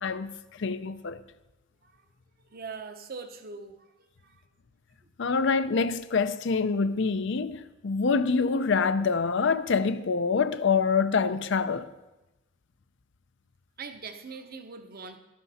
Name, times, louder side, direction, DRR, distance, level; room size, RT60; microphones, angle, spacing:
voice 1, 0.0-0.3 0.6-1.2 5.2-11.9, left 5 dB, 65° left, 0.6 m, -26 dB
voice 2, 2.5-3.7 13.8-15.2, right 4 dB, 50° right, 0.9 m, -41 dB
12.5 x 11.5 x 4.2 m
head